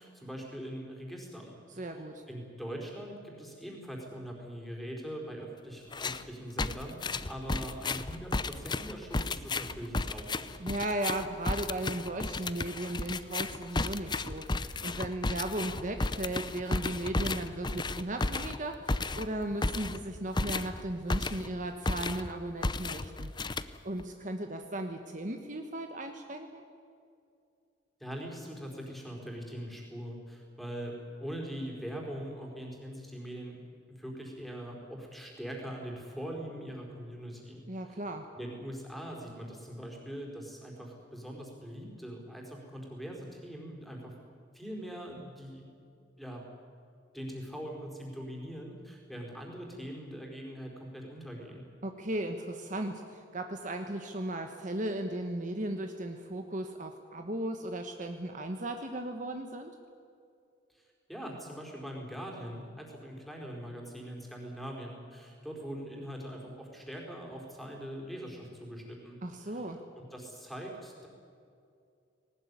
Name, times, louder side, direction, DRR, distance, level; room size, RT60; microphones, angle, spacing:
voice 1, 0.0-1.9 2.3-10.6 28.0-33.6 33.9-38.0 38.3-44.1 44.5-45.6 46.2-46.4 47.1-51.6 60.7-60.8 61.1-69.6 69.9-71.1, equal, ahead, 0 dB, 4.6 m, -42 dB
voice 2, 1.8-2.2 10.6-26.6 37.7-38.3 51.8-59.7 69.2-69.8, right 1 dB, 40° right, 5 dB, 1.3 m, -36 dB
sound 1, 5.9-6.3 6.6-21.6 21.9-22.3 22.6-24.0, left 3 dB, 25° left, 0.7 m, -33 dB
19.5 x 19.0 x 9.8 m, 2.5 s
head